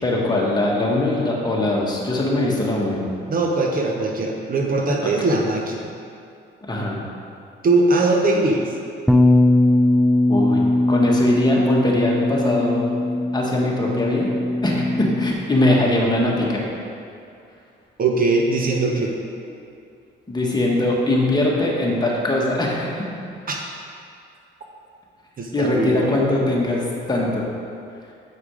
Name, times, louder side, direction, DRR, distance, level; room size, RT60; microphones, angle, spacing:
voice 1, 0.0-3.0 5.0-5.3 6.6-7.0 10.3-10.6 10.9-12.8 13.3-14.3 14.6-16.6 19.5-19.6 20.3-23.0 25.5-27.4, left 1 dB, 20° left, -3 dB, 1.5 m, -21 dB
voice 2, 3.3-5.9 7.6-8.6 18.0-19.1 23.5-23.6 25.4-26.1, right 2 dB, 45° right, 1 dB, 0.9 m, -20 dB
Bass guitar, 9.1-15.3, left 1 dB, ahead, 0.4 m, -19 dB
7.8 x 4.9 x 4.9 m, 2.5 s
cardioid pair, 90°, 20 cm